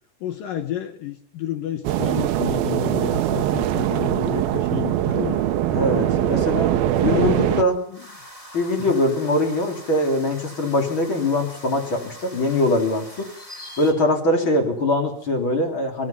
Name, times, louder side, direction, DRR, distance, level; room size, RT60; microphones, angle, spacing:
voice 1, 0.2-5.4 6.0-6.5 7.1-8.0 8.9-9.0, left 10 dB, 80° left, 9 dB, 2.0 m, -30 dB
sound 1, 1.8-7.6, right 12 dB, 80° right, 2.1 m, -22 dB
voice 2, 5.7-7.7 8.5-13.3 13.8-16.1, left 1 dB, 30° left, 4 dB, 3.3 m, -22 dB
sound 2, 6.9-13.9, equal, 10° left, 2.5 m, -43 dB
25.5 x 20.0 x 5.9 m, 0.66 s
omnidirectional pair, 5.6 m